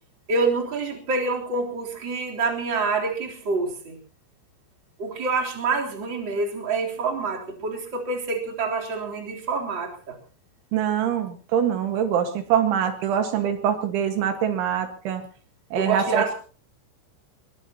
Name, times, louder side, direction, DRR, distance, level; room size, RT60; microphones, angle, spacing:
voice 1, 0.3-4.0 5.0-10.2 15.8-16.3, right 4 dB, 25° right, 0 dB, 3.6 m, -27 dB
voice 2, 10.7-15.2 15.7-16.2, right 8 dB, 75° right, 7 dB, 4.0 m, -24 dB
22.5 x 22.0 x 2.9 m, 0.39 s
omnidirectional pair, 5.6 m